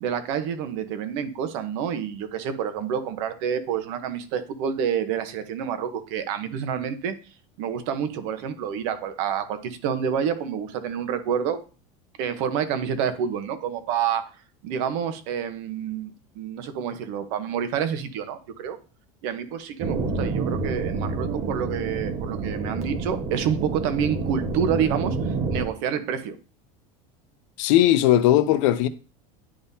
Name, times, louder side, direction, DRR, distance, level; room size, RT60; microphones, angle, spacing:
voice 1, 0.0-7.1 7.6-11.6 12.2-14.2 14.6-18.8 19.2-26.4, right 8 dB, 65° right, 1.0 m, -28 dB
sound 1, 19.8-25.6, right 3 dB, 40° right, 1.3 m, -28 dB
voice 2, 27.6-28.9, left 13 dB, 70° left, 0.7 m, -18 dB
10.0 x 3.7 x 2.8 m
cardioid pair, 150°, 17 cm